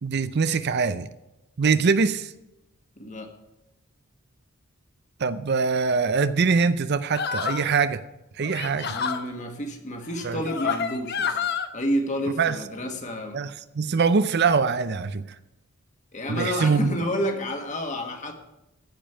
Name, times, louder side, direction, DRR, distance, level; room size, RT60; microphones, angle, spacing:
voice 1, 0.0-1.1 1.6-2.3 5.2-8.0 8.4-9.0 10.2-10.4 12.4-12.6 13.3-15.4 16.3-17.0, right 5 dB, 45° right, 13 dB, 0.5 m, -23 dB
voice 2, 3.0-3.3 8.8-11.4 11.7-13.4 16.1-18.3, equal, 35° left, 4 dB, 1.7 m, -30 dB
sound 1, 7.1-7.7 8.4-9.2 10.2-11.7, left 6 dB, 50° left, 0.9 m, -28 dB
15.0 x 5.3 x 8.7 m, 0.92 s
head